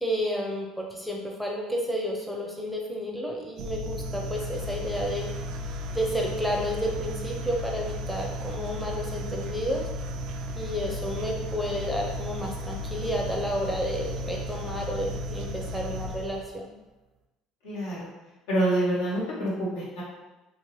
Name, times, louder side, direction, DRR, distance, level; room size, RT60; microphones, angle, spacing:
voice 1, 0.0-5.3 5.9-9.8 10.5-16.7, equal, ahead, -1 dB, 0.6 m, -31 dB
sound 1, 3.6-16.6, equal, 65° right, 0.3 m, -34 dB
voice 2, 17.6-18.1 18.5-20.0, right 1 dB, 85° left, -7 dB, 1.3 m, -27 dB
2.7 x 2.5 x 3.1 m, 1.1 s
supercardioid pair, 95°, 0 cm